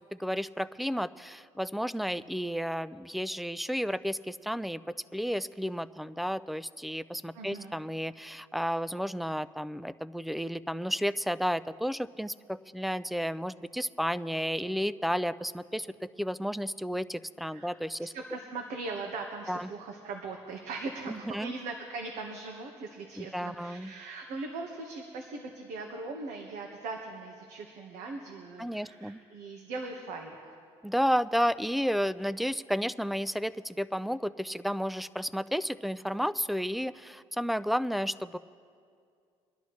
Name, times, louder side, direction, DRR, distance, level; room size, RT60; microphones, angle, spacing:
voice 1, 0.1-4.8 5.1-15.9 16.2-18.1 19.5-19.7 21.1-21.5 23.2-23.9 28.6-29.2 30.8-38.4, equal, ahead, 16 dB, 0.3 m, -32 dB
voice 2, 7.3-7.8 17.5-17.8 18.1-30.5, right 3 dB, 80° right, 2 dB, 1.4 m, -40 dB
24.5 x 11.5 x 3.2 m, 2.3 s
cardioid pair, 110°, 12 cm